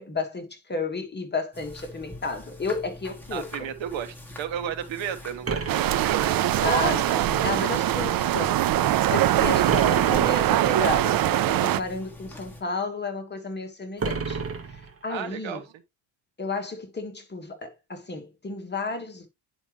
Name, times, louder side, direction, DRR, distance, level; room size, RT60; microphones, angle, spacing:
voice 1, 0.0-3.7 6.6-8.6 9.1-15.6 16.4-19.3, left 3 dB, 20° left, 1.5 m, -32 dB
sound 1, 1.5-12.6, left 1 dB, 5° left, 1.9 m, -44 dB
voice 2, 3.3-6.5 15.1-15.6, right 9 dB, 70° right, 1.1 m, -33 dB
sound 2, 5.4-6.8 9.7-10.8 14.0-15.3, right 4 dB, 30° right, 1.3 m, -32 dB
sound 3, 5.7-11.8, right 13 dB, 50° right, 0.5 m, -22 dB
9.6 x 5.0 x 3.0 m
cardioid pair, 135°, 48 cm